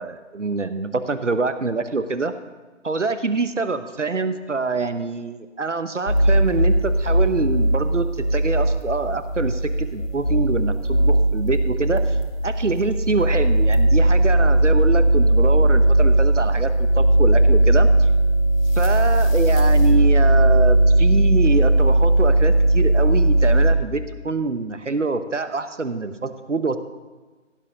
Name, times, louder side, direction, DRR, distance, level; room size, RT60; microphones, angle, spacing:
voice 1, 0.0-2.3 2.8-12.2 12.4-18.1 18.8-26.8, right 3 dB, 70° right, 11 dB, 1.0 m, -25 dB
sound 1, 6.1-23.8, right 1 dB, 85° left, 1.8 m, -18 dB
16.0 x 6.4 x 5.3 m, 1.3 s
figure-of-eight pair, 165°, 38 cm